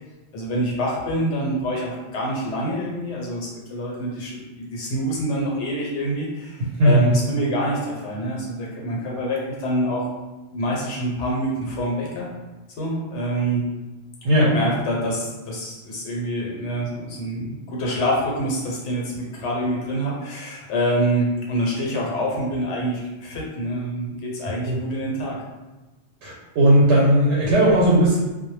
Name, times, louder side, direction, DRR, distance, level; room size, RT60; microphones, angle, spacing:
voice 1, 0.3-10.1 10.5-12.3 12.8-13.7 14.4-25.4, equal, 80° left, -3 dB, 1.0 m, -26 dB
voice 2, 6.8-7.1 14.2-14.5 24.6-24.8 26.2-28.1, right 1 dB, 85° right, -5 dB, 0.9 m, -17 dB
2.1 x 2.0 x 3.1 m, 1.1 s
omnidirectional pair, 1.2 m